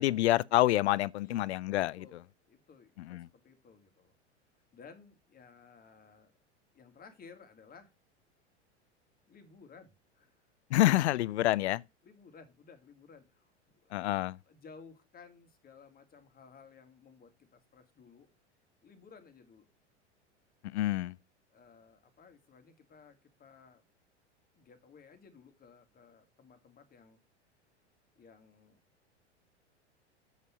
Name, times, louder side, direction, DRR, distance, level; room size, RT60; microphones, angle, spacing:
voice 1, 0.0-2.2 3.0-3.3 10.7-11.8 13.9-14.4 20.6-21.2, left 15 dB, 70° left, 0.5 m, -28 dB
voice 2, 1.9-4.1 4.5-6.3 6.7-7.9 9.3-10.5 12.0-14.1 14.5-18.3 18.8-19.7 21.5-23.8 24.6-27.2 28.2-28.8, left 5 dB, 25° left, 2.2 m, -57 dB
7.7 x 5.4 x 5.9 m
hypercardioid pair, 90°, 35 cm